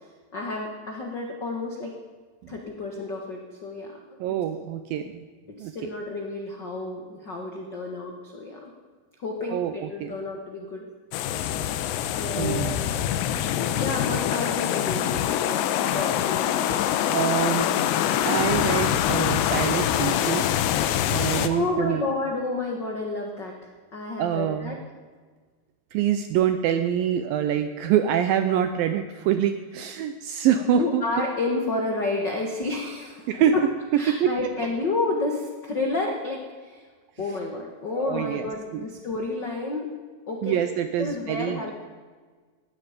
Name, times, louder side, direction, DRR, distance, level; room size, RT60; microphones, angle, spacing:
voice 1, 0.3-1.9 2.5-4.0 5.6-8.7 9.2-10.9 12.0-12.8 13.7-17.1 21.1-23.5 23.9-24.8 29.8-29.9 30.7-33.6 34.0-36.8 37.2-39.9 40.3-40.6 41.0-41.7, left 2 dB, 70° left, 1 dB, 1.0 m, -30 dB
voice 2, 4.2-5.2 5.6-5.7 9.5-10.2 12.4-12.8 17.1-17.7 18.3-20.6 21.1-22.1 24.2-24.8 25.9-31.0 33.3-33.6 33.9-34.3 37.9-38.9 40.4-41.7, right 9 dB, 85° right, 9 dB, 2.0 m, -25 dB
sound 1, 11.1-21.5, left 11 dB, 85° left, 3.0 m, -24 dB
19.0 x 14.5 x 5.1 m, 1.5 s
omnidirectional pair, 4.9 m